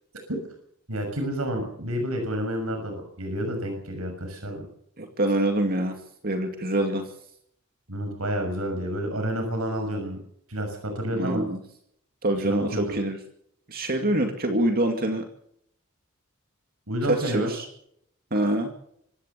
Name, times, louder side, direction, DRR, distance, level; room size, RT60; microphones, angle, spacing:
voice 1, 0.9-4.7 7.9-10.2 10.5-11.4 12.4-12.9 16.9-17.5, equal, 90° right, 4 dB, 6.3 m, -29 dB
voice 2, 5.0-6.0 6.2-7.1 11.1-11.6 12.2-13.2 13.7-15.2 17.1-17.7 18.3-18.7, right 1 dB, 45° right, 4 dB, 2.3 m, -25 dB
25.5 x 15.5 x 6.9 m, 0.71 s
head